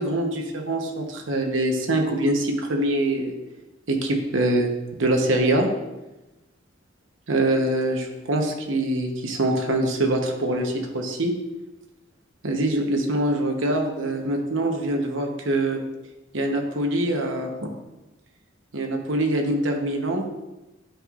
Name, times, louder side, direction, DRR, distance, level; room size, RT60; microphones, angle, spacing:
voice 1, 0.0-3.3 3.9-4.7 5.0-5.7 7.3-11.3 12.4-15.8 16.3-17.7 18.7-20.2, right 1 dB, 70° right, 2 dB, 1.0 m, -24 dB
8.8 x 5.6 x 2.5 m, 1.0 s
head